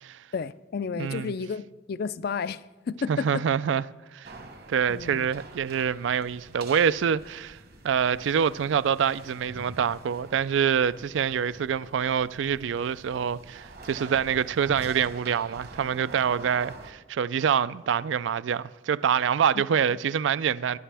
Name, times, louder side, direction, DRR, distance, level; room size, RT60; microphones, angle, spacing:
voice 1, 0.3-2.6 2.9-3.4 4.9-5.3, left 5 dB, 50° left, 0.4 m, -32 dB
voice 2, 1.0-1.3 3.1-3.9 4.1-4.3 4.7-7.6 7.8-20.8, right 7 dB, 70° right, 0.4 m, -26 dB
sound 1, 4.2-16.9, right 2 dB, 50° right, 1.3 m, -46 dB
19.5 x 11.5 x 3.4 m
head